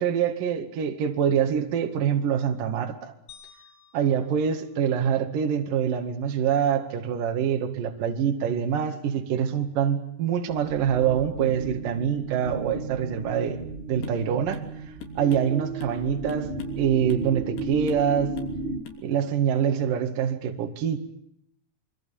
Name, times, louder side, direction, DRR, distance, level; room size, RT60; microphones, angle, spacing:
voice 1, 0.0-3.1 3.9-13.6 13.9-14.6 15.2-18.3 19.0-21.0, right 8 dB, 55° right, 5 dB, 3.3 m, -25 dB
sound 1, 3.3-5.6, left 8 dB, 40° left, 5.5 m, -54 dB
sound 2, 10.5-18.8, right 3 dB, 30° right, 1.0 m, -34 dB
sound 3, 14.0-14.3 14.5-14.7 15.0-16.0 16.3-16.8 17.1-17.3 17.6-18.1 18.4-18.6 18.9-19.0, left 7 dB, 85° left, 5.4 m, -43 dB
25.5 x 24.5 x 7.1 m, 0.76 s
omnidirectional pair, 5.0 m